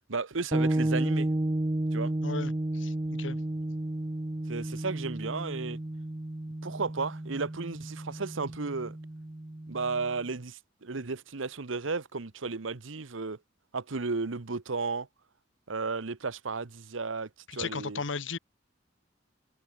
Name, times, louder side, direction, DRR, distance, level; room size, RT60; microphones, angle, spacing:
voice 1, 0.1-1.3 1.9-2.1 4.5-5.8 6.6-9.0 9.7-13.4 13.7-15.1 15.7-18.0, right 4 dB, 85° right, 1.0 m, -34 dB
sound 1, 0.5-10.2, right 1 dB, 20° right, 0.7 m, -32 dB
voice 2, 2.2-2.9 3.2-3.4 17.5-18.4, left 4 dB, 75° left, 1.2 m, -35 dB
head